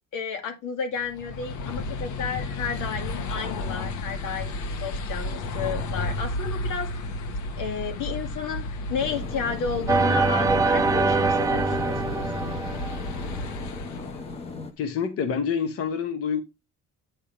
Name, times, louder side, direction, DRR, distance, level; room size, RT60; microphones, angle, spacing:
voice 1, 0.1-6.9 7.6-12.3, left 6 dB, 90° left, 2.2 m, -32 dB
sound 1, 1.1-14.6, left 2 dB, 70° left, 1.2 m, -33 dB
sound 2, 9.0-14.7, left 3 dB, 20° left, 0.7 m, -38 dB
sound 3, 9.9-13.4, right 3 dB, 10° right, 0.5 m, -24 dB
voice 2, 14.8-16.4, left 7 dB, 50° left, 0.8 m, -27 dB
8.6 x 3.4 x 5.6 m
cardioid pair, 175°, 30 cm